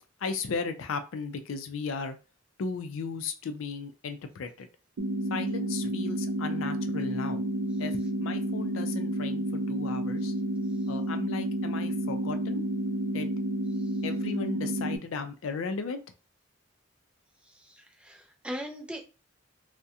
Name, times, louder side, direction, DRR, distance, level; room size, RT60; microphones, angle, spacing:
voice 1, 0.2-2.2 2.6-4.7 5.3-7.4 7.8-10.3 10.9-12.6 13.1-13.3 14.0-16.0, left 4 dB, 85° left, 8 dB, 0.4 m, -36 dB
sound 1, 5.0-15.0, right 1 dB, 75° right, 0.4 m, -30 dB
voice 2, 17.4-19.0, equal, 5° right, 2 dB, 0.3 m, -40 dB
2.7 x 2.1 x 2.3 m, 0.32 s
head